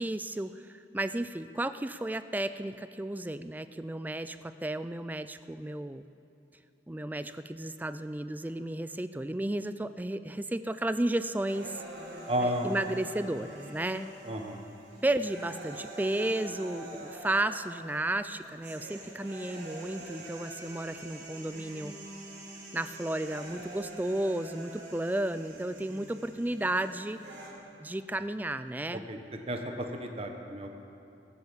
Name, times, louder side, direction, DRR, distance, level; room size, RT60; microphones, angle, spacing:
voice 1, 0.0-6.0 6.9-11.8 12.4-14.1 15.0-21.9 22.7-27.2 27.8-29.0, right 1 dB, 10° right, 12 dB, 0.4 m, -33 dB
sound 1, 11.5-27.5, right 1 dB, 85° right, 3.5 m, -46 dB
voice 2, 12.3-12.7 14.3-14.6 29.1-29.2 29.5-30.7, equal, 35° right, 4 dB, 1.3 m, -32 dB
22.5 x 8.2 x 7.1 m, 2.7 s
head